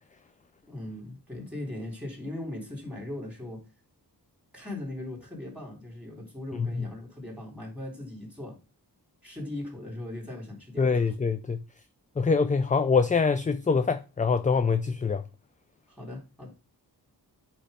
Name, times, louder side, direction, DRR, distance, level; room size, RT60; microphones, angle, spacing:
voice 1, 0.7-3.6 4.5-8.6 9.2-11.1 15.9-16.5, left 1 dB, 5° right, 3.8 m, -39 dB
voice 2, 10.8-11.6 12.2-15.2, left 5 dB, 20° left, 0.4 m, -24 dB
8.7 x 3.0 x 5.2 m
wide cardioid pair, 85°, 39 cm